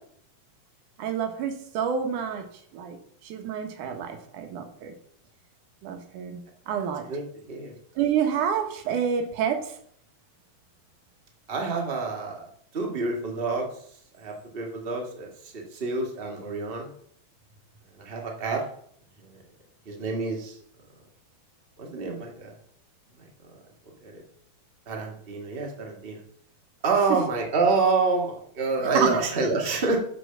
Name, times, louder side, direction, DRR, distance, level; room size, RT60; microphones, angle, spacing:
voice 1, 1.0-2.5 2.7-4.9 5.8-7.1 8.0-9.7 28.9-29.2, right 7 dB, 70° right, 6 dB, 2.4 m, -28 dB
voice 2, 11.5-12.5 12.7-13.7 14.2-16.9 18.0-18.6 19.2-19.4 19.8-20.6 21.8-22.5 24.0-24.2 24.9-26.2 26.8-30.0, right 3 dB, 40° right, 0 dB, 0.8 m, -27 dB
7.9 x 6.1 x 6.6 m, 0.64 s
omnidirectional pair, 4.1 m